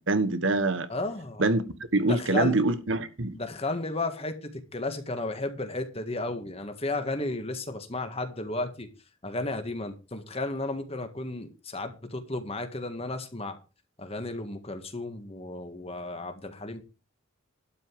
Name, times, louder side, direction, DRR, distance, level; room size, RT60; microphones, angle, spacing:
voice 1, 0.1-0.9 1.4-1.6 1.9-3.4, right 2 dB, 60° right, 1.2 m, -25 dB
voice 2, 0.9-1.4 2.0-2.6 3.3-8.9 9.2-13.6 14.0-16.8, left 2 dB, 30° left, 1.7 m, -33 dB
12.0 x 5.3 x 7.7 m
head